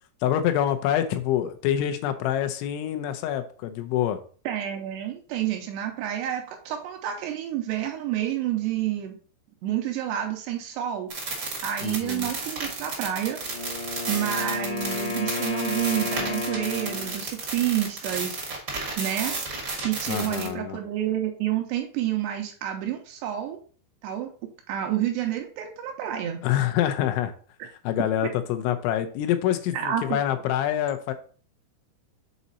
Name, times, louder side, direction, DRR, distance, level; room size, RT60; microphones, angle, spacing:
voice 1, 0.2-4.2 11.8-12.3 20.1-20.8 26.4-27.3 27.8-31.1, left 11 dB, 85° left, 8 dB, 3.1 m, -26 dB
voice 2, 4.5-9.2 9.6-11.1 11.6-13.4 14.1-18.4 19.0-19.3 19.8-23.6 24.0-24.3 24.7-26.4 29.7-30.2, right 11 dB, 80° right, 4 dB, 2.6 m, -29 dB
sound 1, 11.1-20.5, right 4 dB, 55° right, 1.3 m, -32 dB
Wind instrument woodwind instrument, 13.4-17.3, left 3 dB, 60° left, 1.1 m, -32 dB
7.3 x 4.1 x 4.0 m, 0.42 s
omnidirectional pair, 5.3 m